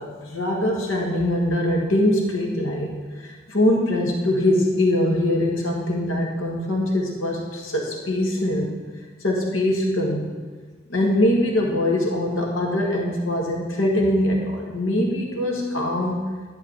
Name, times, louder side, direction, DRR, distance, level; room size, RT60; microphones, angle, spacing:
voice 1, 0.0-8.7 9.2-10.3 10.9-16.2, left 1 dB, 90° left, -1 dB, 1.6 m, -22 dB
10.5 x 7.7 x 3.9 m, 1.4 s
head